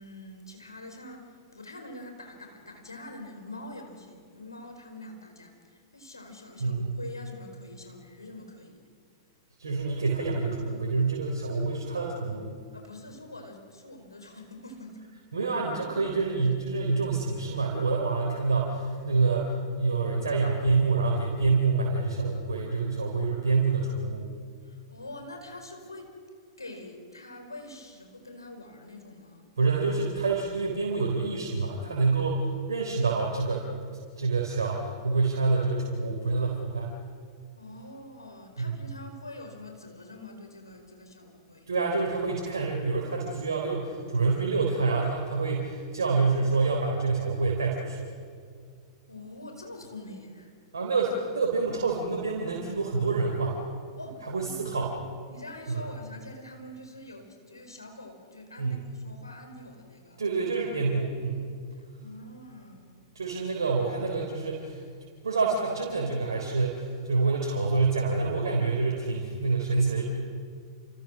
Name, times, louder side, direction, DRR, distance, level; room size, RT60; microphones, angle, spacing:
voice 1, 0.0-8.8 12.7-15.1 24.6-26.1 26.6-29.5 37.5-41.7 49.1-50.5 54.0-54.5 55.3-60.2 61.7-63.1, left 1 dB, 85° left, 4 dB, 4.4 m, -45 dB
voice 2, 6.6-6.9 9.6-12.5 15.3-24.3 29.6-33.7 34.2-36.9 38.6-38.8 41.7-48.1 50.7-53.6 54.2-54.9 55.7-55.8 58.6-58.8 60.2-61.5 63.1-64.8 65.2-70.0, right 4 dB, 75° right, -1 dB, 3.9 m, -27 dB
29.0 x 28.0 x 6.3 m, 2.1 s
figure-of-eight pair, 100°, 2 cm